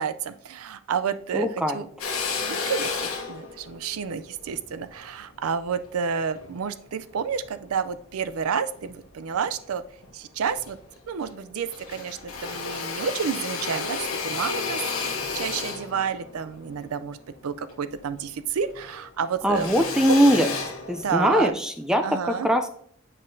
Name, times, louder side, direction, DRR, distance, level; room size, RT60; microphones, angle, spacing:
voice 1, 0.0-1.9 2.4-9.8 10.1-10.8 11.1-17.2 17.4-19.8 21.0-21.5 22.0-22.5, right 6 dB, 85° right, 13 dB, 0.4 m, -30 dB
voice 2, 1.3-1.8 19.4-20.5 20.9-22.7, equal, 5° right, 7 dB, 0.4 m, -21 dB
Drill, 2.0-6.5 7.1-8.3 8.7-9.7 10.0-10.1 10.4-11.4 11.6-18.3 18.6-21.5, left 4 dB, 85° left, 1.1 m, -33 dB
8.5 x 5.3 x 2.6 m, 0.62 s
head